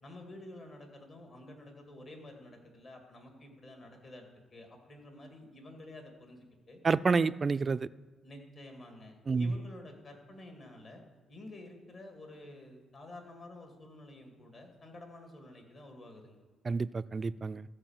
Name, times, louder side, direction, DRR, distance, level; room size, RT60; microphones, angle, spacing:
voice 1, 0.0-4.3 4.5-6.8 8.2-11.0 11.3-16.4, left 1 dB, 45° left, 3 dB, 2.3 m, -50 dB
voice 2, 6.8-7.9 9.3-9.5 16.6-17.6, right 4 dB, 35° right, 15 dB, 0.3 m, -29 dB
14.0 x 4.8 x 7.3 m, 1.3 s
cardioid pair, 90°, 0 cm